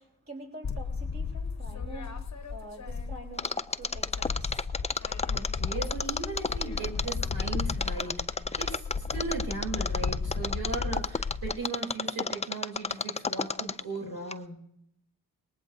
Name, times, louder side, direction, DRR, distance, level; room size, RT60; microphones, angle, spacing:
voice 1, 0.0-2.1 2.5-3.5 3.8-4.6 4.8-4.9, right 1 dB, 35° right, 1 dB, 3.8 m, -46 dB
sound 1, 0.6-3.5 3.8-11.5, left 5 dB, 45° left, 1.0 m, -34 dB
Mechanisms, 3.4-14.0 14.3-14.4, left 4 dB, 20° left, 0.4 m, -31 dB
voice 2, 5.3-14.7, right 4 dB, 75° right, -1 dB, 3.4 m, -37 dB
19.0 x 19.0 x 2.7 m, 0.76 s
cardioid pair, 55°, 37 cm